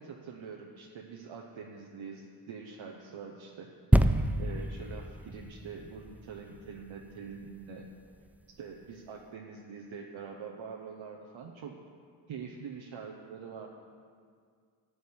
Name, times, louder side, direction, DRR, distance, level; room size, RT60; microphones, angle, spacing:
voice 1, 0.0-3.7 4.4-7.9 8.5-11.7 12.3-13.7, right 5 dB, 70° right, 0 dB, 1.0 m, -44 dB
sound 1, 3.9-7.5 8.1-8.2, right 1 dB, 5° right, 0.4 m, -28 dB
11.5 x 5.2 x 8.4 m, 2.1 s
cardioid pair, 65°, 50 cm